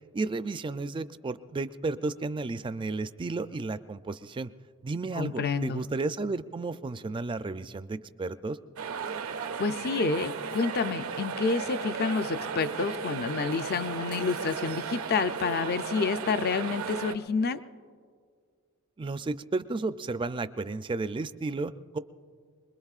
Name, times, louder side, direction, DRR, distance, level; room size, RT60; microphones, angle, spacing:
voice 1, 0.1-4.5 4.8-8.6 19.0-22.0, right 3 dB, 25° right, 12 dB, 0.3 m, -33 dB
voice 2, 5.2-5.8 9.6-17.6, left 4 dB, 50° left, 11 dB, 0.5 m, -29 dB
sound 1, 8.8-17.1, right 5 dB, 80° right, 0.6 m, -35 dB
24.5 x 21.0 x 2.4 m, 2.1 s
head